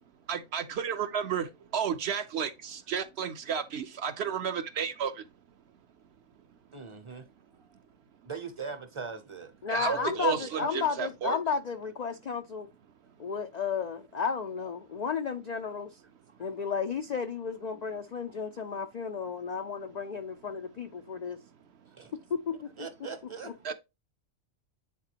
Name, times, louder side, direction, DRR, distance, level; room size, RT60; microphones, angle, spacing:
voice 1, 0.3-1.5 1.7-5.1 9.7-11.4 23.6-23.7, right 7 dB, 60° right, 0.8 m, -32 dB
voice 2, 6.7-7.3 7.7-7.8 8.2-11.0 15.6-15.7 16.4-16.5 17.7-17.8 21.1-21.2 21.8-22.1 22.8-23.6, right 5 dB, 30° right, 0.6 m, -42 dB
voice 3, 9.6-12.7 13.2-15.9 16.4-21.4 22.5-22.7, left 6 dB, 75° left, 0.3 m, -33 dB
9.4 x 4.1 x 2.8 m
omnidirectional pair, 1.4 m